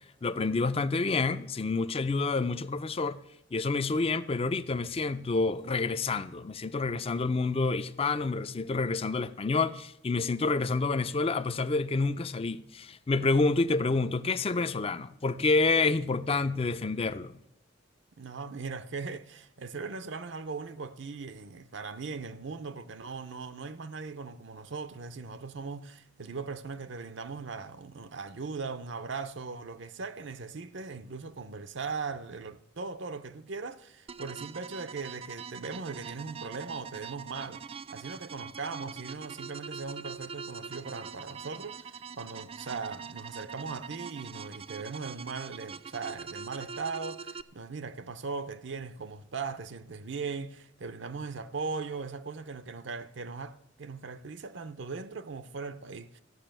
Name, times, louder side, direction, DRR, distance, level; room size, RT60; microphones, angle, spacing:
voice 1, 0.2-3.2 3.5-17.3, left 3 dB, 30° left, 0.5 m, -28 dB
voice 2, 18.2-37.6 37.9-56.2, right 4 dB, 65° right, 0.6 m, -39 dB
sound 1, 34.1-47.4, right 6 dB, 30° right, 0.4 m, -43 dB
14.0 x 6.1 x 8.9 m
head